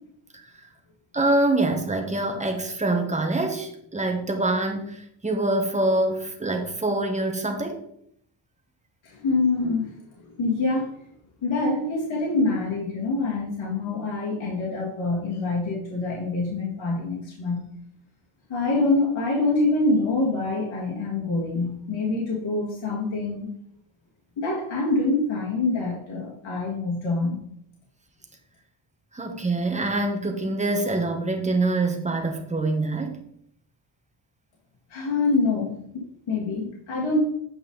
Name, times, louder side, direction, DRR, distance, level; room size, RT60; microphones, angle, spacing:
voice 1, 1.1-7.8 29.1-33.2, right 2 dB, 15° right, 3 dB, 1.2 m, -25 dB
voice 2, 9.0-10.9 11.4-17.7 18.5-23.5 24.4-27.4 34.9-37.2, left 3 dB, 70° left, -4 dB, 2.0 m, -25 dB
8.7 x 5.3 x 3.9 m, 0.70 s
wide cardioid pair, 125°, 49 cm